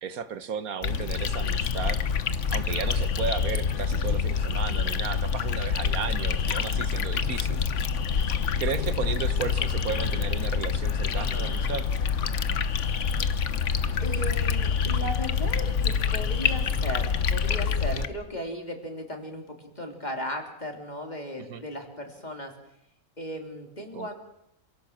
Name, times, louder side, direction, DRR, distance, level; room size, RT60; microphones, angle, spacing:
voice 1, 0.0-2.0 2.5-7.6 8.6-11.8 17.9-18.1 21.5-21.6 23.9-24.1, right 6 dB, 85° right, 12 dB, 1.6 m, -34 dB
sound 1, 0.8-18.1, left 6 dB, 60° left, 1.3 m, -26 dB
voice 2, 14.0-22.5 23.2-24.1, equal, 30° left, 3 dB, 3.6 m, -36 dB
27.0 x 17.5 x 7.4 m, 0.80 s
omnidirectional pair, 1.5 m